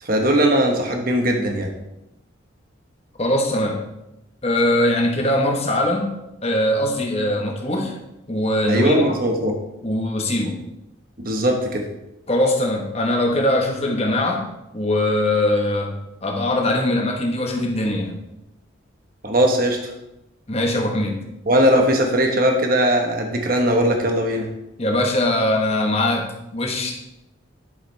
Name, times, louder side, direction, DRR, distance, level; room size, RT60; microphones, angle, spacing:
voice 1, 0.0-1.7 8.7-9.5 11.2-11.8 19.2-19.9 21.5-24.5, equal, 45° right, 2 dB, 1.2 m, -19 dB
voice 2, 3.2-3.8 4.4-8.0 8.3-9.1 9.8-10.6 12.3-14.5 14.7-18.2 20.5-21.2 24.8-27.0, left 1 dB, 30° left, 2 dB, 1.2 m, -21 dB
11.0 x 7.2 x 3.4 m, 0.90 s
head